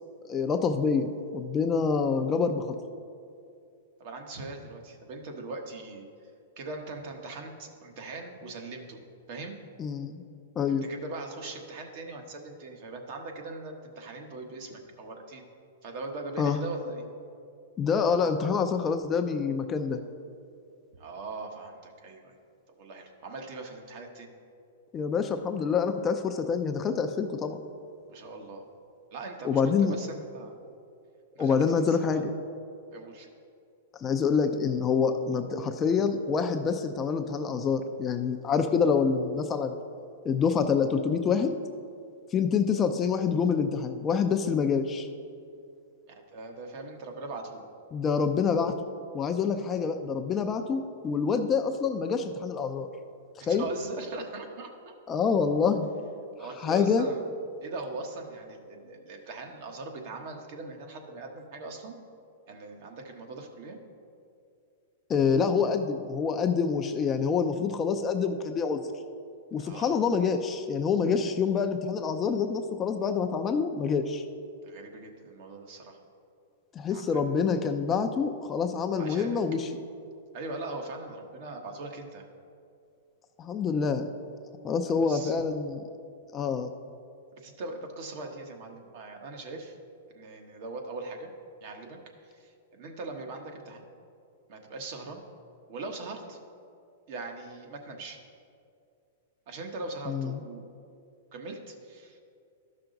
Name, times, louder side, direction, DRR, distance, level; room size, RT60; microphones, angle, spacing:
voice 1, 0.3-2.8 9.8-10.2 10.6-10.8 16.4-16.6 17.8-20.0 24.9-27.6 29.4-29.9 31.4-32.3 34.0-39.7 40.2-41.5 42.3-45.1 47.9-48.7 49.1-52.9 53.5-53.7 55.1-55.9 56.6-57.1 65.1-68.8 69.5-74.2 76.8-79.7 83.4-84.1 84.6-85.8 86.3-86.7 100.1-100.3, left 6 dB, 25° left, 7 dB, 0.5 m, -26 dB
voice 2, 4.0-6.0 6.6-9.0 9.3-9.5 10.8-15.4 15.8-17.0 21.0-22.3 22.8-24.3 28.1-28.6 29.1-30.6 31.3-32.2 32.9-33.3 46.1-47.6 53.4-54.9 56.4-57.2 57.6-62.0 62.5-63.8 69.6-70.0 74.6-76.0 76.9-77.2 78.9-79.4 80.3-82.3 85.0-85.4 87.4-89.7 90.1-91.3 91.6-92.0 92.3-93.9 94.5-95.2 95.7-96.4 97.1-98.2 99.5-100.8 101.3-102.2, right 3 dB, 55° right, 3 dB, 1.2 m, -40 dB
13.0 x 5.8 x 3.9 m, 2.4 s
hypercardioid pair, 135°, 0 cm